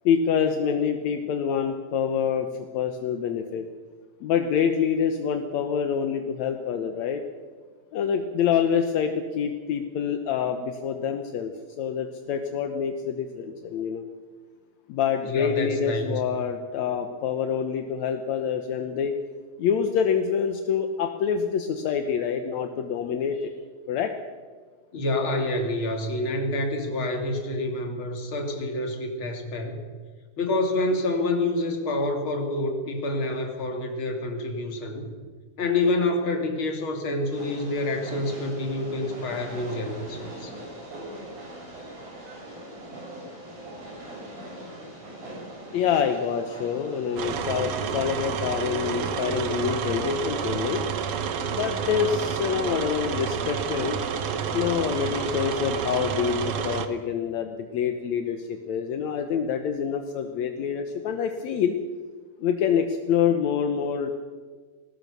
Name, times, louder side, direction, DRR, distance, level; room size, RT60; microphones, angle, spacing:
voice 1, 0.1-2.5 2.7-3.7 4.2-7.2 7.9-14.1 14.9-19.1 19.6-23.5 23.9-24.1 45.7-50.8 51.5-54.0 54.5-61.8 62.4-64.1, left 7 dB, 70° left, 6 dB, 1.8 m, -26 dB
voice 2, 15.2-16.2 24.9-29.9 30.4-35.1 35.6-40.5, left 2 dB, 35° left, 3 dB, 3.0 m, -27 dB
Train, 37.3-50.5, right 1 dB, 50° right, 7.9 m, -41 dB
sound 1, 47.2-56.9, right 7 dB, 80° right, 1.3 m, -29 dB
21.0 x 18.5 x 6.8 m, 1.5 s
omnidirectional pair, 4.4 m